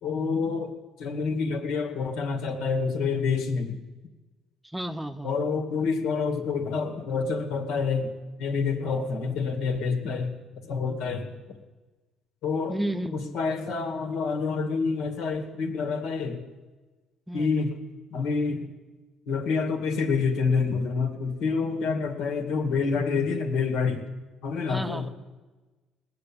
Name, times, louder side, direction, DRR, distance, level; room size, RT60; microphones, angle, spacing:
voice 1, 0.0-3.8 5.2-11.6 12.4-12.8 13.1-16.4 17.3-17.7 18.1-18.7 19.3-24.1 24.4-25.1, left 5 dB, 75° left, 4 dB, 2.1 m, -28 dB
voice 2, 4.6-5.3 12.7-13.4 17.3-17.7 24.7-25.1, right 1 dB, 10° right, 9 dB, 0.8 m, -32 dB
19.0 x 6.8 x 8.8 m, 1.3 s
supercardioid pair, 90°, 0 cm